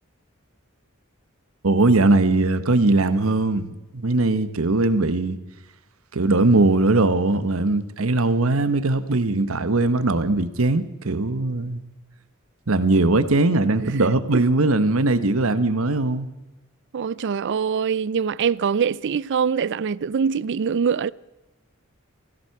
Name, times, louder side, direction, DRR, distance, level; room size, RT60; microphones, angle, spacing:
voice 1, 1.6-5.4 6.1-11.8 12.7-16.3, right 2 dB, 80° right, 1.1 m, -20 dB
voice 2, 13.8-14.5 16.9-21.1, right 6 dB, 60° right, 0.4 m, -24 dB
16.5 x 16.0 x 4.8 m
head